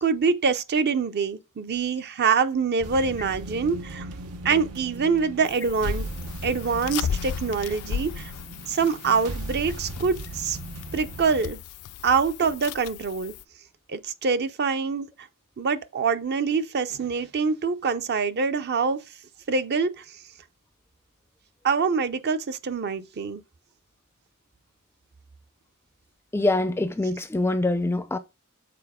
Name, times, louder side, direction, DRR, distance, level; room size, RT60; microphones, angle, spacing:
voice 1, 0.0-4.1 4.4-6.1 6.4-8.3 8.7-10.6 10.9-11.6 12.0-13.3 13.9-15.1 15.6-19.0 19.5-20.0 21.6-23.4, right 5 dB, 50° right, 0.5 m, -25 dB
sound 1, 2.8-11.4, right 2 dB, 85° right, 0.8 m, -38 dB
sound 2, 5.4-13.4, left 8 dB, 85° left, 0.3 m, -35 dB
voice 2, 26.3-28.2, left 2 dB, 10° left, 0.4 m, -24 dB
6.8 x 4.1 x 3.6 m
head